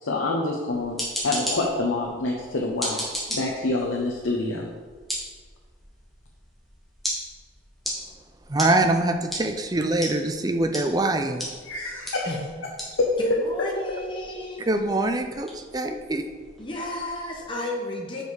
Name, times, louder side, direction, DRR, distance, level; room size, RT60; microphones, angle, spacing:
voice 1, 0.0-4.7 11.6-12.3 13.0-13.1, left 2 dB, 85° left, -1 dB, 0.8 m, -27 dB
sound 1, 0.7-17.5, equal, ahead, 1.5 m, -37 dB
voice 2, 8.5-11.5 14.7-16.3, right 2 dB, 20° right, 6 dB, 0.4 m, -24 dB
voice 3, 13.2-14.7 16.6-18.2, equal, 25° left, -2 dB, 0.8 m, -31 dB
6.3 x 5.2 x 4.8 m, 1.5 s
head